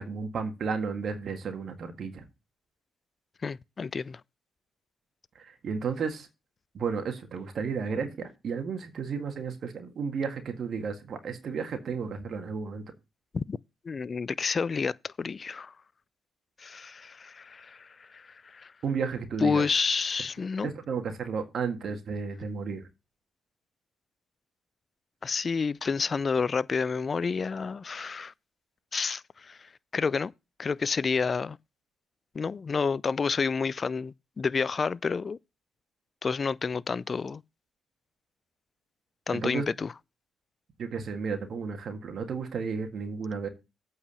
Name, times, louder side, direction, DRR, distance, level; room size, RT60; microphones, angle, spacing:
voice 1, 0.0-2.3 5.4-6.3 6.7-12.8 18.8-19.7 20.6-22.8 39.3-39.6 40.8-43.5, right 5 dB, 60° right, 1.7 m, -33 dB
voice 2, 3.4-4.2 13.3-13.6 13.8-15.7 16.6-18.7 19.4-20.7 25.2-28.3 28.9-30.3 30.6-31.6 32.3-35.4 36.2-37.4 39.3-39.9, left 5 dB, 45° left, 0.4 m, -29 dB
8.5 x 4.7 x 6.9 m
supercardioid pair, 55°, 0 cm